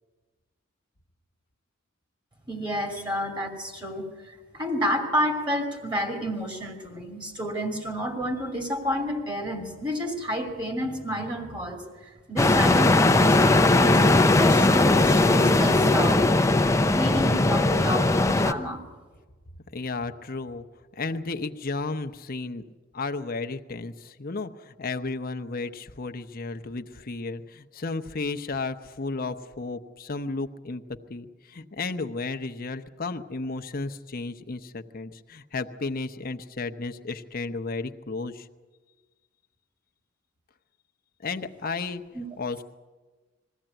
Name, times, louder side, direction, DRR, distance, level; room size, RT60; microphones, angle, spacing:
voice 1, 2.5-16.2 16.9-18.8 42.1-42.2, equal, 25° right, 3 dB, 2.5 m, -30 dB
sound 1, 12.4-18.5, left 2 dB, 15° left, 0.6 m, -19 dB
voice 2, 19.7-20.6 20.9-22.6 22.9-38.5 41.2-42.0 42.4-42.6, left 3 dB, 45° left, 8 dB, 0.9 m, -33 dB
21.5 x 15.0 x 9.0 m, 1.3 s
head